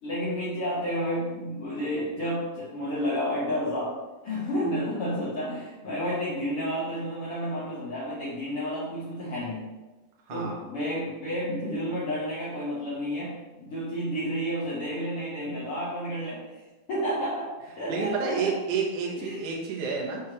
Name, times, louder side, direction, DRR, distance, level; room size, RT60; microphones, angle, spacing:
voice 1, 0.0-4.0 4.2-9.7 10.3-16.6 16.9-18.5 19.2-19.4, equal, 75° left, -7 dB, 1.2 m, -31 dB
voice 2, 10.3-10.6 17.9-20.2, right 5 dB, 60° right, -1 dB, 1.7 m, -30 dB
6.3 x 3.1 x 5.8 m, 1.2 s
omnidirectional pair, 4.1 m